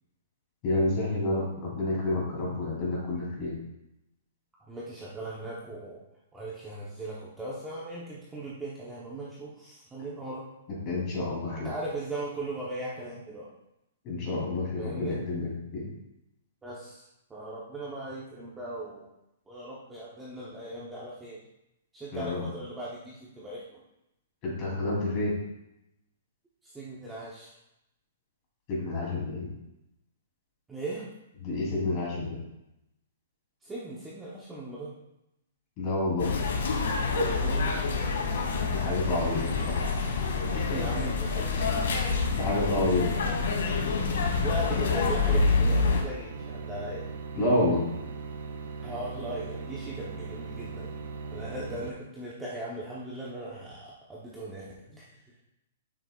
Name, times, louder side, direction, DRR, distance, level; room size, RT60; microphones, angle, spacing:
voice 1, 0.6-3.5 10.8-11.7 14.0-15.9 22.1-22.4 24.4-25.3 28.7-29.5 31.4-32.4 35.8-36.3 38.7-39.8 42.3-43.1 47.3-47.8, left 2 dB, 25° left, -4 dB, 3.1 m, -29 dB
voice 2, 4.7-6.0 6.3-10.4 11.6-13.5 14.8-15.2 16.6-17.0 17.3-19.1 19.5-21.4 21.9-23.8 26.6-27.5 30.7-31.1 33.6-35.0 37.4-37.8 39.8-40.0 40.5-42.2 43.0-43.4 44.4-47.0 48.8-50.9 51.3-55.1, right 2 dB, 5° right, -7 dB, 0.9 m, -38 dB
sound 1, 36.2-46.0, left 4 dB, 75° left, 2.0 m, -27 dB
sound 2, 45.7-51.9, right 4 dB, 85° right, 1.3 m, -39 dB
12.0 x 6.5 x 2.4 m, 0.86 s
hypercardioid pair, 175°, 0 cm